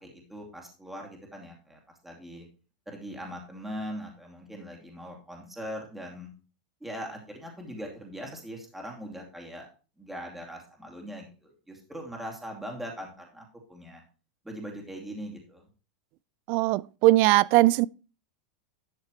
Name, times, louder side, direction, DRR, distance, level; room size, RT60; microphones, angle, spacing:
voice 1, 0.0-2.5 2.9-6.3 6.8-9.7 10.0-14.0 14.4-15.7, equal, 5° right, 2.6 m, -41 dB
voice 2, 16.5-17.9, right 19 dB, 45° right, 0.4 m, -20 dB
11.5 x 6.3 x 3.1 m
supercardioid pair, 140°, 4 cm